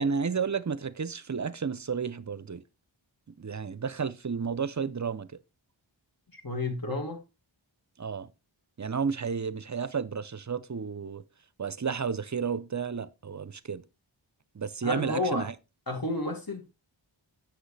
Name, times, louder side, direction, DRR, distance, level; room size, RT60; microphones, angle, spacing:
voice 1, 0.0-2.6 3.4-5.3 8.0-8.3 8.8-11.2 11.6-13.8 14.6-15.5, right 6 dB, 35° right, 0.6 m, -32 dB
voice 2, 6.3-7.2 14.8-15.4 15.9-16.6, left 2 dB, 45° left, 2.2 m, -31 dB
7.9 x 6.5 x 3.3 m
wide cardioid pair, 40°, 48 cm